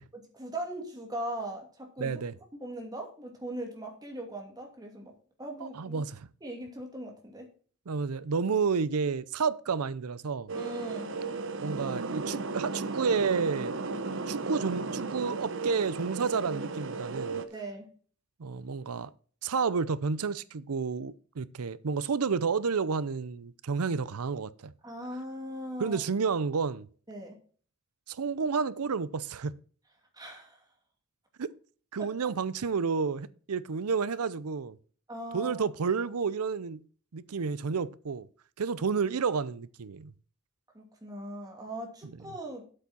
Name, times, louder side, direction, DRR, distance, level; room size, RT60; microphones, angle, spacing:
voice 1, 0.1-2.2 2.6-5.1 5.4-6.0 6.4-7.5 10.5-11.2 17.5-17.9 24.8-26.0 27.1-27.4 30.1-30.6 32.0-32.2 35.1-35.7 40.7-42.7, right 1 dB, 15° right, 2.6 m, -39 dB
voice 2, 2.0-2.3 5.6-6.3 7.9-10.5 11.6-13.7 14.3-17.4 18.4-19.1 19.4-24.7 25.8-26.9 28.1-29.5 31.4-31.5 31.9-34.8 35.3-36.8 37.1-38.3 38.6-40.1 42.0-42.2, right 5 dB, 80° right, 0.6 m, -30 dB
sound 1, 10.5-17.5, right 3 dB, 60° right, 0.9 m, -35 dB
8.4 x 8.3 x 4.3 m
head